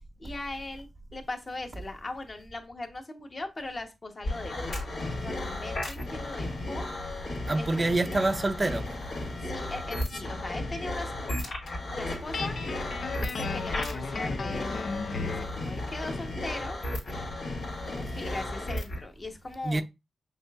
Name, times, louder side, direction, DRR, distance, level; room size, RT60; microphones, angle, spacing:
voice 1, 0.2-6.9 7.5-8.0 9.4-11.5 12.0-12.6 13.2-14.7 15.2-16.8 17.8-19.8, left 2 dB, 40° left, 1.0 m, -39 dB
sound 1, 4.2-19.0, left 2 dB, 85° left, 2.3 m, -34 dB
voice 2, 7.5-9.0 19.6-19.8, right 2 dB, 30° right, 0.4 m, -26 dB
Guitar, 12.3-15.6, left 4 dB, 70° left, 0.4 m, -35 dB
6.2 x 2.5 x 2.4 m
cardioid pair, 70°, 0 cm